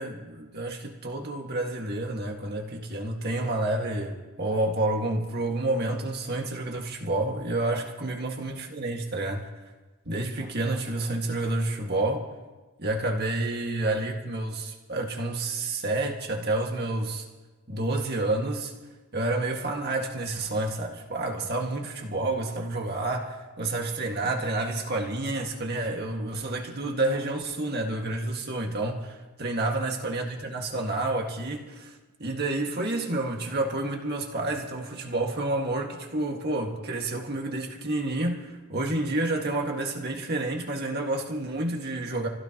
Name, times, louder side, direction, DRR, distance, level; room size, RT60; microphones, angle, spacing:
voice 1, 0.0-9.4 10.1-12.2 12.8-17.2 17.7-18.7 19.1-42.3, right 2 dB, 50° right, 1 dB, 1.9 m, -29 dB
28.0 x 16.5 x 3.0 m, 1.2 s
head